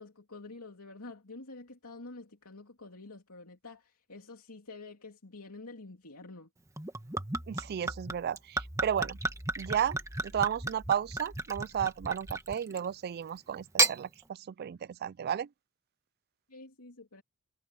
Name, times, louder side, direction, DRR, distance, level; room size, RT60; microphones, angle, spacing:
voice 1, 0.0-6.5 16.5-17.2, left 3 dB, 80° left, 3.0 m, -48 dB
Gurgling / Chink clink / Liquid, 6.8-12.9 13.6-14.0, right 3 dB, 15° right, 1.5 m, -33 dB
voice 2, 7.5-9.2 9.6-15.5, right 9 dB, 45° right, 0.3 m, -33 dB
head